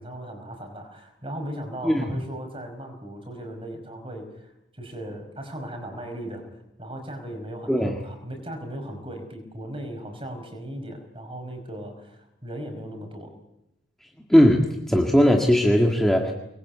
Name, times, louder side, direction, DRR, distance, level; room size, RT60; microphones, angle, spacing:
voice 1, 0.0-6.4 6.8-13.4, right 1 dB, 30° right, 5 dB, 5.3 m, -37 dB
voice 2, 14.3-16.3, equal, ahead, 0 dB, 1.9 m, -18 dB
24.5 x 21.5 x 8.4 m, 0.88 s
head